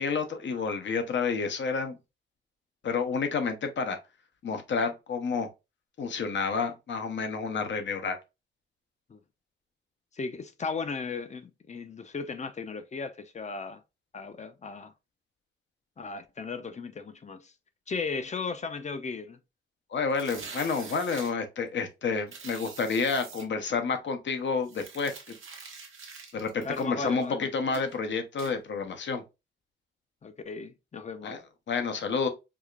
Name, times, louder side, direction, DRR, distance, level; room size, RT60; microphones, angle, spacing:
voice 1, 0.0-2.0 2.8-4.0 4.4-5.5 6.0-8.2 19.9-25.4 26.3-29.2 31.2-31.4 31.7-32.3, left 5 dB, 70° left, 0.8 m, -29 dB
voice 2, 10.1-13.8 14.1-14.9 16.0-17.5 17.9-19.4 26.6-27.5 30.2-31.4, left 4 dB, 35° left, 0.5 m, -36 dB
sound 1, 20.1-21.3 22.3-23.4 24.6-27.3 27.7-28.0 28.4-28.5, right 5 dB, 90° right, 0.9 m, -45 dB
4.8 x 2.4 x 2.3 m
wide cardioid pair, 100°, 20 cm